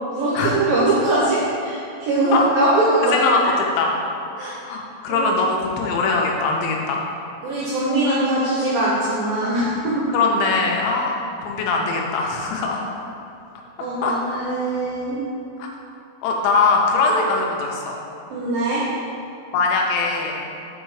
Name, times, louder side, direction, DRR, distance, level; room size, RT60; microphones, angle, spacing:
voice 1, 0.1-3.1 3.4-3.5 4.4-4.5 5.1-5.3 7.4-10.0 13.8-15.2 17.1-17.2 18.3-18.8, right 2 dB, 75° right, -6 dB, 2.1 m, -21 dB
voice 2, 3.1-3.9 4.7-7.0 10.1-12.9 14.0-14.1 15.6-15.7 16.2-18.0 19.5-20.4, left 3 dB, 90° left, 0 dB, 3.2 m, -21 dB
6.6 x 4.9 x 4.8 m, 2.7 s
omnidirectional pair, 5.2 m